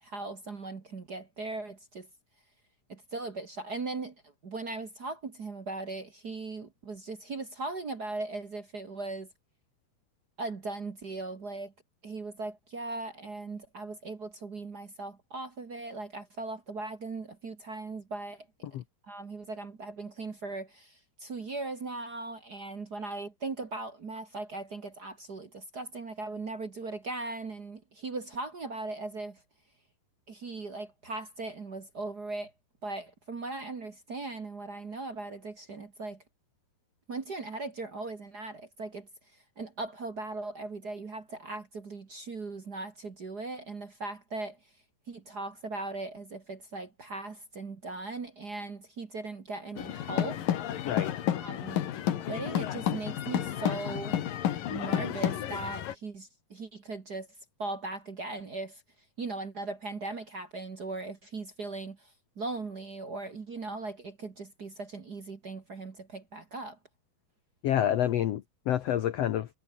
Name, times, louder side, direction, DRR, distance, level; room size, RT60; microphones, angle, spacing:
voice 1, 0.0-2.1 2.9-4.1 4.4-9.3 10.4-11.7 12.0-18.4 19.1-29.4 30.3-32.5 32.8-36.2 37.1-39.1 39.6-44.6 45.1-50.4 51.4-51.9 52.3-54.2 54.7-57.3 57.6-58.8 59.2-62.1 62.3-66.8, right 3 dB, 40° right, 1.5 m, -38 dB
sound 1, 49.8-55.9, left 11 dB, 70° left, 3.3 m, -31 dB
voice 2, 67.6-69.5, left 11 dB, 85° left, 1.4 m, -28 dB
omnidirectional pair, 4.3 m